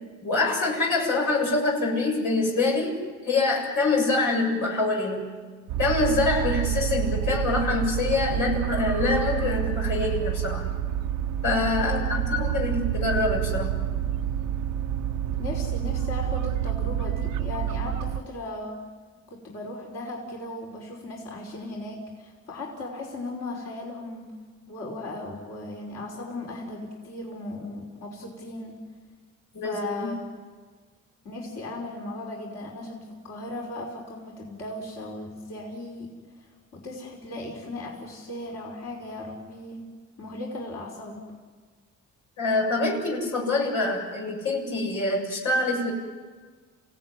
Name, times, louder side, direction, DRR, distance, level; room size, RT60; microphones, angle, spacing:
voice 1, 0.2-3.0 3.2-5.3 5.8-10.6 11.4-13.8 29.5-30.1 42.4-45.9, left 3 dB, 85° left, -1 dB, 7.3 m, -25 dB
sound 1, 5.7-18.2, right 10 dB, 85° right, 0.9 m, -28 dB
voice 2, 11.8-12.6 15.4-18.8 19.3-24.3 24.7-28.8 29.6-30.3 31.2-36.1 36.4-39.8 40.2-41.2, left 2 dB, 60° left, -2 dB, 5.4 m, -37 dB
28.5 x 17.0 x 9.9 m, 1.5 s
cardioid pair, 90°, 30 cm